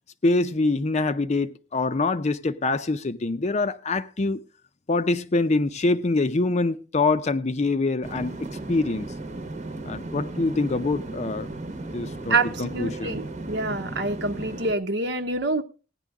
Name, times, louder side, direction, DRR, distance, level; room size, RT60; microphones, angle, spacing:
voice 1, 0.2-4.4 4.9-8.4 8.7-9.1 9.9-11.5 11.9-13.2, left 3 dB, 35° left, 0.6 m, -25 dB
sound 1, 8.0-14.7, right 2 dB, 40° right, 1.1 m, -35 dB
voice 2, 12.7-15.6, right 3 dB, 65° right, 1.0 m, -26 dB
16.5 x 10.0 x 3.5 m
head